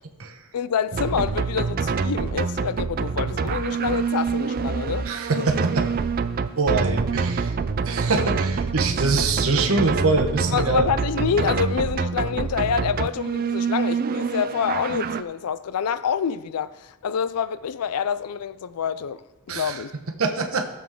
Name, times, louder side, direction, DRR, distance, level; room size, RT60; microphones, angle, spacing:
voice 1, 0.5-5.1 5.4-5.5 10.5-19.2 19.5-19.9, left 7 dB, 85° left, 0.4 m, -27 dB
sound 1, 0.9-15.2, right 5 dB, 40° right, 0.4 m, -26 dB
voice 2, 5.1-5.9 6.5-7.6 7.8-10.9 19.5-19.8 20.2-20.7, right 3 dB, 65° right, 1.1 m, -24 dB
16.0 x 7.3 x 3.7 m
head